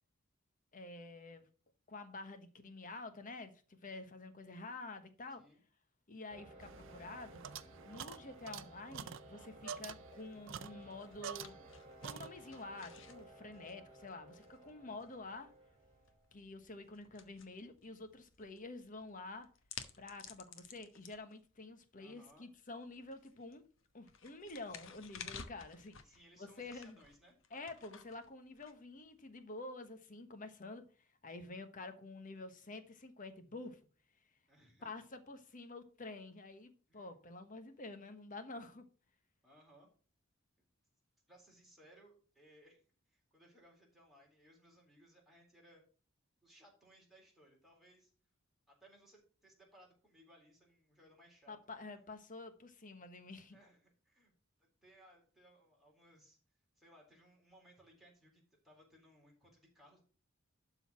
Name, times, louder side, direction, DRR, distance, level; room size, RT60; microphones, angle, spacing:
voice 1, 0.7-1.4 1.9-5.4 6.1-7.4 7.8-11.5 12.0-15.5 16.3-19.5 20.0-23.6 23.9-27.0 27.5-33.8 34.8-38.9 51.5-53.6, left 2 dB, 40° left, 1.2 m, -49 dB
sound 1, 6.3-16.3, right 1 dB, 30° right, 2.1 m, -57 dB
sound 2, 6.6-11.8 12.0-12.7, right 7 dB, 65° right, 0.6 m, -48 dB
sound 3, 10.1-29.4, left 7 dB, 65° left, 1.1 m, -56 dB
voice 2, 21.9-22.5 26.0-27.4 34.5-35.1 36.9-37.1 39.4-39.9 41.3-42.8 43.1-45.8 46.4-48.1 48.7-51.6 53.5-54.3 54.8-56.4 56.8-60.0, equal, ahead, 3.6 m, -64 dB
12.0 x 4.0 x 5.9 m
head